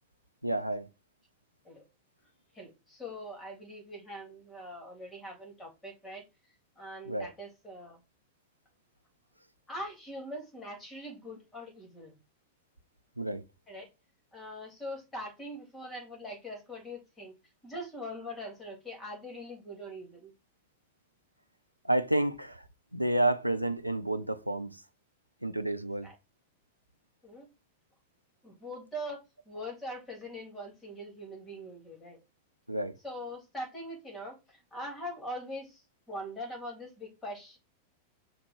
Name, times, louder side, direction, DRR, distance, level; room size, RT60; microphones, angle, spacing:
voice 1, 0.4-0.9 7.1-7.3 13.2-13.4 21.8-22.6 22.9-24.8 25.4-26.1 32.7-33.0, right 1 dB, 90° right, 0.5 m, -30 dB
voice 2, 2.6-6.2 6.8-8.0 9.7-12.2 13.7-13.9 14.3-17.3 17.6-20.3 26.0-26.1 27.2-27.5 28.4-29.2 29.5-32.2 33.0-35.8 36.1-37.6, equal, 15° left, 3.5 m, -42 dB
5.9 x 3.7 x 5.1 m
figure-of-eight pair, 90°, 0 cm